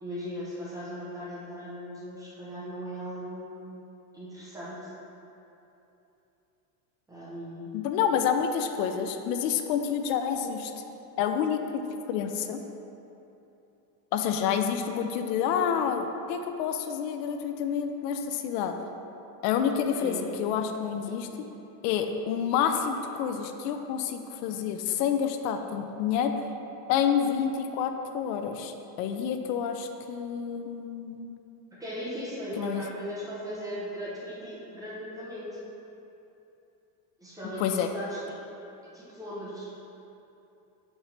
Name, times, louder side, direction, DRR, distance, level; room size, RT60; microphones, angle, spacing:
voice 1, 0.0-3.7 4.1-4.9 7.1-7.7 19.9-20.2 21.0-21.1 31.8-35.6 37.2-38.4 38.8-39.7, equal, 10° right, -8 dB, 0.6 m, -38 dB
voice 2, 7.7-10.7 11.2-12.6 14.1-18.8 19.4-21.3 21.8-26.5 26.9-31.3 32.6-32.8 37.6-37.9, left 7 dB, 85° left, 6 dB, 0.6 m, -28 dB
4.8 x 4.2 x 5.1 m, 2.9 s
cardioid pair, 175°, 49 cm